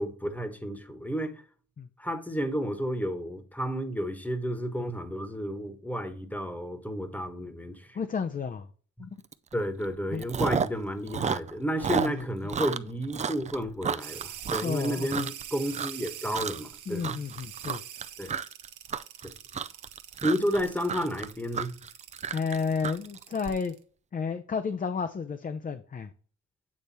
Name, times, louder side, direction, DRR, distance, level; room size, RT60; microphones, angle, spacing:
voice 1, 0.0-1.4 2.0-8.0 9.0-9.1 9.5-17.2 18.2-18.3 19.2-19.3 20.2-21.8, equal, 5° left, 1.2 m, -31 dB
voice 2, 7.9-8.7 9.0-9.1 10.1-10.2 12.0-12.3 14.6-15.3 16.9-17.8 22.3-23.7 24.1-26.1, left 5 dB, 30° left, 0.5 m, -31 dB
Chewing mastication, 9.3-9.5 9.8-10.8 11.1-15.4 15.7-16.1 16.3-16.7 17.0-23.5, right 6 dB, 25° right, 0.4 m, -32 dB
sound 1, 14.0-23.8, right 10 dB, 85° right, 1.0 m, -44 dB
8.5 x 3.3 x 4.1 m
cardioid pair, 90°, 30 cm